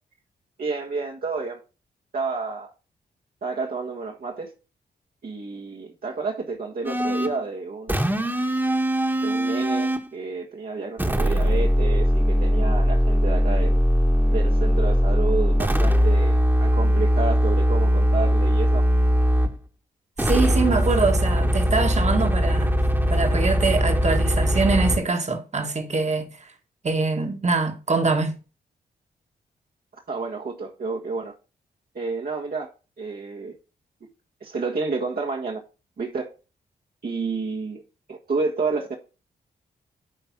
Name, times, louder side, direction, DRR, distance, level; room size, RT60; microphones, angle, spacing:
voice 1, 0.6-1.6 2.1-2.7 3.4-4.5 5.2-8.1 9.2-13.8 14.3-18.8 30.1-31.3 31.9-32.7 33.0-33.5 34.4-35.6 36.0-36.3 37.0-37.8 38.1-39.0, right 4 dB, 60° right, 1.6 m, -30 dB
sound 1, 6.8-7.4 7.9-10.1 11.0-19.6 20.2-25.0, equal, 10° right, 1.5 m, -20 dB
voice 2, 20.2-26.5 26.8-28.4, right 4 dB, 40° right, 1.6 m, -24 dB
9.9 x 3.4 x 5.9 m
supercardioid pair, 50°, 18 cm